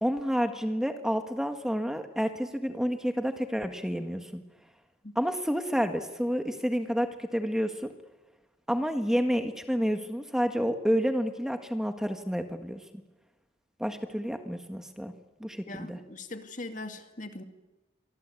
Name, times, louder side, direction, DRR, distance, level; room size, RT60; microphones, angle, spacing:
voice 1, 0.0-4.4 5.2-7.9 8.7-12.8 13.8-15.1 15.4-16.0, equal, 5° right, 6 dB, 1.6 m, -29 dB
voice 2, 15.7-17.4, left 2 dB, 45° left, 7 dB, 2.3 m, -40 dB
27.5 x 24.5 x 8.5 m, 1.1 s
head